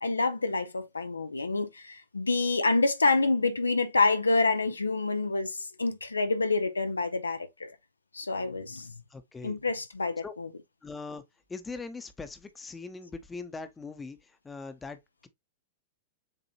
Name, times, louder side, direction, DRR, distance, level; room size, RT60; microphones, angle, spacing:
voice 1, 0.0-7.7 8.1-8.9 9.4-10.5, left 3 dB, 85° left, 0.6 m, -27 dB
voice 2, 9.1-9.6 10.2-10.3 10.8-11.2 11.5-14.2 14.4-15.3, left 4 dB, 15° left, 0.8 m, -41 dB
7.3 x 2.6 x 2.8 m
figure-of-eight pair, 95°, 0 cm